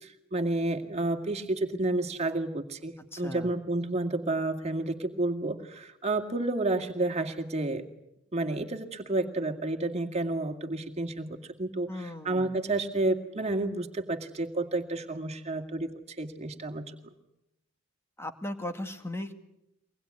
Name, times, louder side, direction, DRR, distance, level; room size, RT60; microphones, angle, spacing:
voice 1, 0.0-7.8 8.3-17.0, right 2 dB, 35° right, 4 dB, 2.2 m, -30 dB
voice 2, 3.1-3.5 11.9-12.5 18.2-19.3, left 1 dB, 15° left, 7 dB, 1.8 m, -37 dB
24.0 x 20.0 x 9.6 m, 0.87 s
head